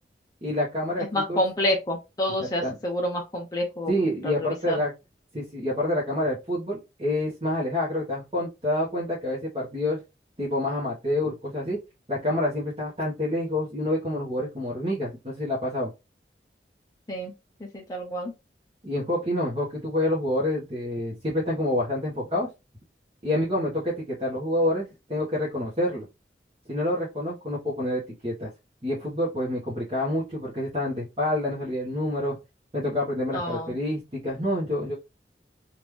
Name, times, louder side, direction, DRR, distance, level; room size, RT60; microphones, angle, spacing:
voice 1, 0.4-1.4 2.6-2.7 3.9-4.9 5.3-10.0 10.4-11.8 12.1-15.9 18.8-22.5 23.2-26.0 26.7-28.5 28.8-32.4 32.7-34.9, left 1 dB, 30° right, -6 dB, 1.0 m, -27 dB
voice 2, 1.0-3.9 4.2-4.8 17.1-17.3 17.6-18.3 33.3-33.7, left 1 dB, 20° left, 0 dB, 0.5 m, -28 dB
3.5 x 2.5 x 3.0 m, 0.25 s
head